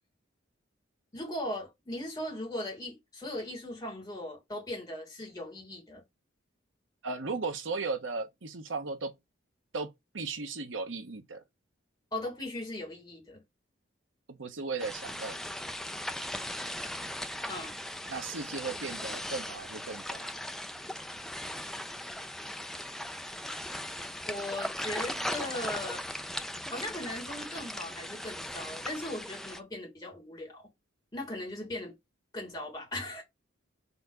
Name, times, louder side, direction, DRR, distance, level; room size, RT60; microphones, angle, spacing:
voice 1, 1.1-6.0 12.1-13.4 17.5-17.7 24.3-26.0 26.7-30.7 31.1-31.9 32.3-33.2, left 1 dB, 20° left, 3.6 m, -38 dB
voice 2, 7.0-9.1 9.7-9.9 10.1-11.4 14.3-15.4 18.1-20.2, right 4 dB, 80° right, 1.1 m, -36 dB
sound 1, 14.8-29.6, left 1 dB, ahead, 0.4 m, -38 dB
4.7 x 4.3 x 5.5 m
head